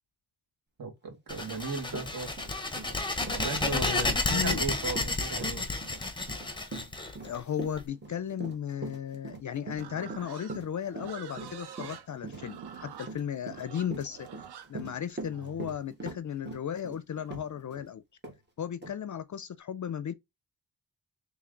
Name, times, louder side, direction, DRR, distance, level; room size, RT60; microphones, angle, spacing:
voice 1, 0.8-2.3 3.3-5.7, right 4 dB, 55° right, 1.8 m, -36 dB
sound 1, 1.3-7.8, left 2 dB, 10° left, 0.8 m, -31 dB
Run, 1.5-1.6 1.9-17.9 18.2-18.4 18.8-18.9, right 3 dB, 25° right, 1.3 m, -42 dB
voice 2, 3.7-4.6 7.2-14.3 14.7-18.0 18.6-20.1, left 9 dB, 50° left, 0.4 m, -35 dB
Livestock farm animals working animals, 9.8-15.8, right 9 dB, 75° right, 0.7 m, -46 dB
3.2 x 3.2 x 3.8 m
cardioid pair, 85°, 40 cm